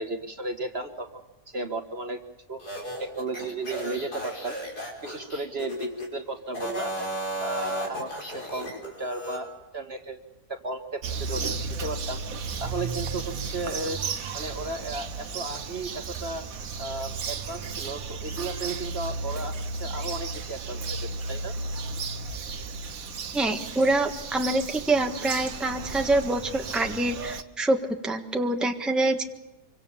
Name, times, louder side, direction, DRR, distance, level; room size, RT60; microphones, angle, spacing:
voice 1, 0.0-2.2 2.5-2.6 3.0-4.6 5.0-6.9 7.4-10.2 10.5-11.5 11.8-12.2 12.6-14.0 14.3-16.4 16.8-21.5, right 2 dB, 40° right, 6 dB, 1.6 m, -34 dB
sound 1, 2.6-6.1 6.5-9.4, right 1 dB, 80° left, 6.1 m, -34 dB
Bird vocalization bird call bird song, 11.0-27.4, right 4 dB, 65° right, 1.5 m, -34 dB
voice 2, 23.3-27.8 28.0-29.2, right 2 dB, ahead, 3 dB, 1.4 m, -25 dB
26.0 x 24.5 x 7.2 m, 0.98 s
omnidirectional pair, 1.6 m